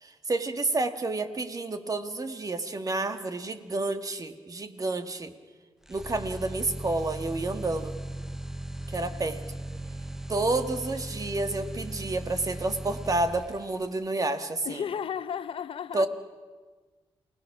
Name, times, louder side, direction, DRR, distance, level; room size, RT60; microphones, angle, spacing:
voice 1, 0.0-5.3 5.9-7.9 8.9-9.4 10.3-14.8 15.9-16.1, right 2 dB, 40° right, 1.8 m, -30 dB
sound 1, 5.9-13.8, right 1 dB, 5° right, 0.9 m, -38 dB
voice 2, 14.6-16.1, left 8 dB, 75° left, 0.7 m, -33 dB
28.5 x 18.5 x 6.0 m
cardioid pair, 75°, 9 cm